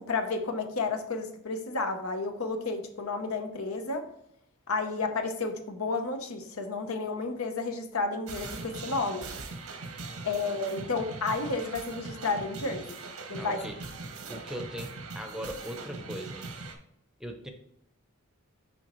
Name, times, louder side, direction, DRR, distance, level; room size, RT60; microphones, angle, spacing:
voice 1, 0.1-4.1 4.7-9.3 10.2-13.0 13.3-13.6, left 3 dB, 85° left, 6 dB, 0.9 m, -31 dB
sound 1, 8.3-16.8, right 3 dB, 85° right, 1.0 m, -41 dB
voice 2, 10.1-10.6 13.3-13.8 14.3-16.5 17.2-17.5, equal, ahead, 4 dB, 0.6 m, -40 dB
6.3 x 5.2 x 3.0 m, 0.76 s
head